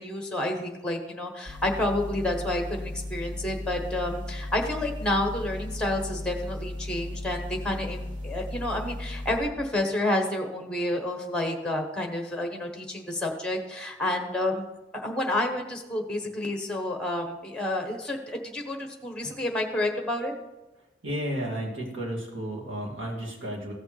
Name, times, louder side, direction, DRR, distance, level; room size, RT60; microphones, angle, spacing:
voice 1, 0.0-14.6 14.9-20.3, left 1 dB, 5° left, 3 dB, 1.1 m, -29 dB
sound 1, 1.5-9.4, left 1 dB, 60° right, 1.8 m, -36 dB
voice 2, 21.0-23.7, equal, 80° right, -4 dB, 2.2 m, -32 dB
15.0 x 6.2 x 3.2 m, 1.1 s
head